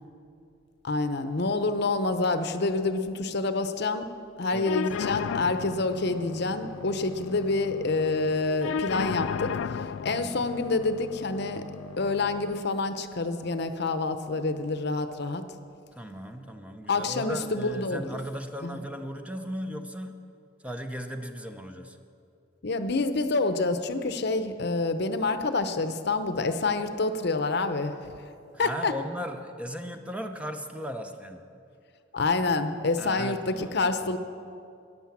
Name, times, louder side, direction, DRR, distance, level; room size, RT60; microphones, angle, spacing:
voice 1, 0.8-4.1 4.4-11.7 12.0-15.5 16.9-18.2 18.6-18.8 22.6-28.0 28.6-28.9 32.1-34.2, left 3 dB, 60° left, 10 dB, 0.8 m, -27 dB
sound 1, 4.6-12.6, left 7 dB, 90° left, 0.4 m, -35 dB
voice 2, 10.1-10.5 15.9-20.3 20.6-22.0 28.5-31.5 33.0-33.7, equal, 5° right, 6 dB, 0.6 m, -37 dB
13.5 x 10.5 x 7.3 m, 2.5 s
head